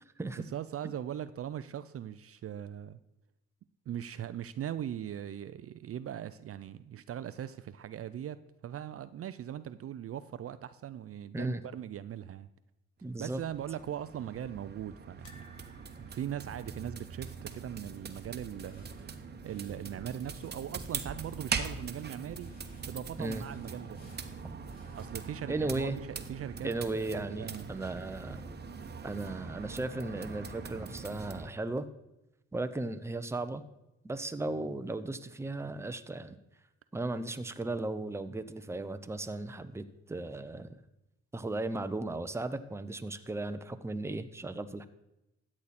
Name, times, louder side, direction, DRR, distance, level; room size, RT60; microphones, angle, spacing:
voice 1, 0.4-3.0 3.9-12.5 13.2-15.5 16.0-22.5 22.9-24.0 24.9-27.7, right 10 dB, 50° right, 13 dB, 0.5 m, -40 dB
voice 2, 13.0-13.4 23.2-23.4 25.5-26.0 26.6-28.5 29.0-31.9 32.5-33.6 34.0-36.4 36.9-40.7 41.3-44.9, right 2 dB, 10° right, 10 dB, 0.7 m, -36 dB
sound 1, 13.0-31.5, right 5 dB, 35° right, 1.0 m, -42 dB
sound 2, 15.2-18.3 18.6-18.8 19.0-19.1 20.4-20.9 21.4-21.5, left 2 dB, 70° left, 1.4 m, -62 dB
sound 3, 18.1-25.1, left 1 dB, 30° left, 5.1 m, -65 dB
13.5 x 8.6 x 4.2 m, 0.92 s
cardioid pair, 90°, 30 cm